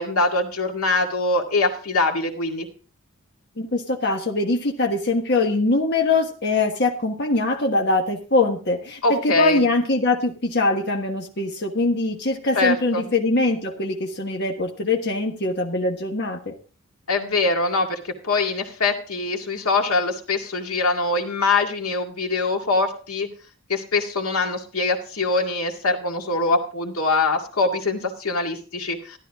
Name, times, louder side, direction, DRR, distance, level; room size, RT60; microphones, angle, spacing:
voice 1, 0.0-2.7 9.0-9.6 12.6-13.1 17.1-23.3 23.7-29.2, left 3 dB, 85° left, 3 dB, 2.1 m, -23 dB
voice 2, 3.6-16.5, left 2 dB, 50° left, 2 dB, 1.4 m, -22 dB
13.0 x 12.5 x 3.6 m, 0.37 s
head